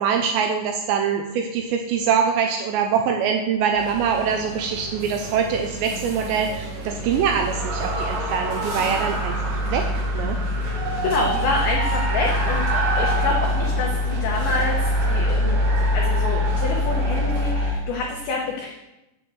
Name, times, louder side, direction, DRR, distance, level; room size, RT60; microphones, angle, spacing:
voice 1, 0.0-9.9 10.1-10.4, right 7 dB, 90° right, 3 dB, 2.6 m, -24 dB
sound 1, 3.7-17.7, equal, 50° right, 3.2 m, -24 dB
sound 2, 3.8-17.5, right 3 dB, 65° right, 2.3 m, -37 dB
voice 2, 11.0-15.6 15.9-18.7, left 3 dB, 85° left, 0 dB, 2.1 m, -27 dB
7.9 x 6.6 x 8.0 m, 0.98 s
omnidirectional pair, 5.7 m